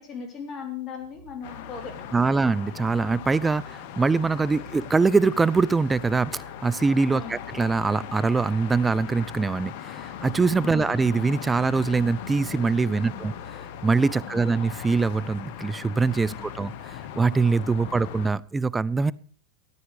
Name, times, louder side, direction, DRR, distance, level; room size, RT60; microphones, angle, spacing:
voice 1, 0.0-2.3 7.1-7.4 12.9-13.3 14.1-14.5 16.3-16.6, left 6 dB, 35° left, 5 dB, 3.4 m, -39 dB
sound 1, 1.0-18.4, left 4 dB, 90° left, 5.9 m, -48 dB
sound 2, 1.4-18.3, left 10 dB, 60° left, 1.0 m, -39 dB
voice 2, 2.1-13.3 13.8-19.1, right 4 dB, 15° right, 20 dB, 0.5 m, -23 dB
13.5 x 9.4 x 4.8 m, 0.43 s
hypercardioid pair, 95°, 0 cm